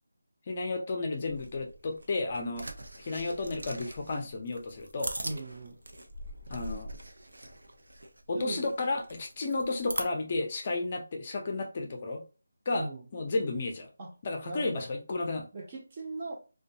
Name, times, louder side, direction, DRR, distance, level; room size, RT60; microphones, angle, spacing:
voice 1, 0.5-2.7 3.0-5.2 6.5-6.9 8.3-12.2 12.7-13.9 14.2-15.5, left 3 dB, 30° left, 0.4 m, -32 dB
sound 1, 1.3-10.0, right 1 dB, 85° right, 0.5 m, -42 dB
voice 2, 5.2-5.8 8.3-8.7 12.7-13.0 14.0-14.1 14.4-14.9 15.5-16.3, right 2 dB, 30° right, 0.6 m, -38 dB
2.6 x 2.2 x 2.6 m
figure-of-eight pair, 170°, 0 cm